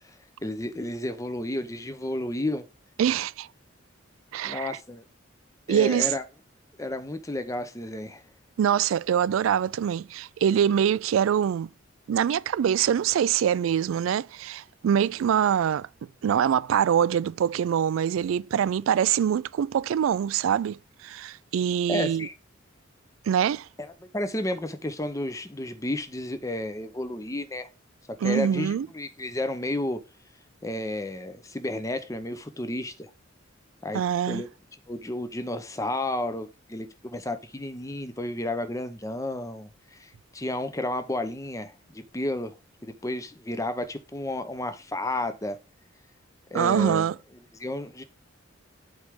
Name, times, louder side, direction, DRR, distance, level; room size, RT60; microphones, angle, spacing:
voice 1, 0.4-2.6 4.4-5.0 5.7-6.2 6.8-8.2 21.9-22.3 23.8-27.7 28.1-30.0 30.6-33.1 33.8-34.5 34.9-42.5 42.8-45.6 46.5-47.1 47.5-48.0, left 1 dB, 15° left, 0.7 m, -32 dB
voice 2, 3.0-3.5 4.3-4.7 5.7-6.1 8.6-11.7 12.1-15.9 16.2-22.3 23.3-23.7 28.2-28.9 33.9-34.4 46.5-47.2, right 9 dB, 80° right, 0.3 m, -24 dB
8.0 x 3.4 x 5.1 m
head